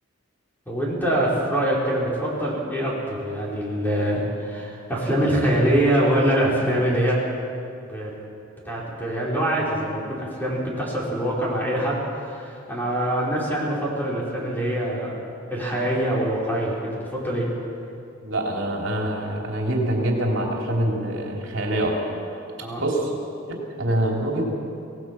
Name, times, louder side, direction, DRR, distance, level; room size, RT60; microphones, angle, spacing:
voice 1, 0.7-7.2 7.9-8.1 8.6-15.1 15.5-17.5 22.6-22.8, right 1 dB, 10° left, -5 dB, 4.8 m, -24 dB
voice 2, 18.2-21.9 22.8-23.1 23.5-24.5, right 1 dB, 70° right, -1 dB, 3.4 m, -25 dB
25.5 x 18.0 x 6.1 m, 2.6 s
head